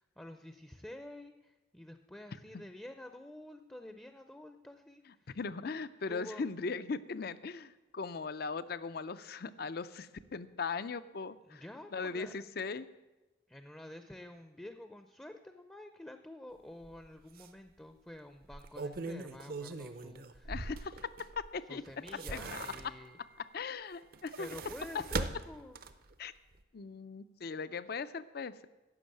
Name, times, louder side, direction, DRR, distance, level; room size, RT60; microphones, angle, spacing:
voice 1, 0.0-5.4 6.1-6.4 11.4-12.4 13.5-20.6 21.7-23.2 24.4-25.8, left 1 dB, 5° left, 7 dB, 0.5 m, -49 dB
voice 2, 5.3-11.6 11.9-12.9 20.5-21.0 21.4-21.8 22.3-22.9 23.4-24.5 24.9-25.0 26.2-26.3 26.7-28.5, left 4 dB, 55° left, 15 dB, 0.5 m, -39 dB
sound 1, 16.8-17.0 17.4-17.5 18.4-21.5 21.9-23.2 24.0-26.1 26.5-26.6, right 3 dB, 50° right, 0.6 m, -41 dB
11.0 x 7.1 x 8.9 m, 1.1 s
head